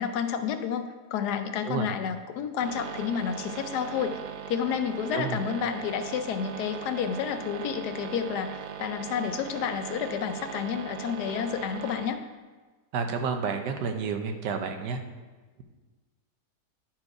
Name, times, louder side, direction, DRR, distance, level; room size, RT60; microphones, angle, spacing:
voice 1, 0.0-4.2 4.5-12.2, left 7 dB, 80° left, 8 dB, 1.2 m, -30 dB
sound 1, 2.6-12.1, right 8 dB, 70° right, 0.9 m, -39 dB
voice 2, 12.9-15.0, right 5 dB, 85° right, 5 dB, 1.4 m, -30 dB
10.5 x 4.4 x 4.8 m, 1.3 s
omnidirectional pair, 1.7 m